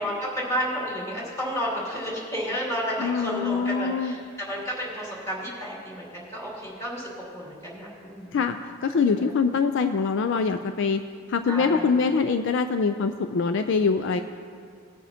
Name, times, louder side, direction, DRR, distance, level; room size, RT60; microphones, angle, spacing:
voice 1, 0.0-8.4 9.2-9.3 11.5-11.9, equal, 15° left, -5 dB, 2.4 m, -31 dB
voice 2, 3.0-4.1 8.3-11.0 11.3-14.2, left 5 dB, 60° left, 8 dB, 0.4 m, -24 dB
19.0 x 9.1 x 2.8 m, 2.2 s
head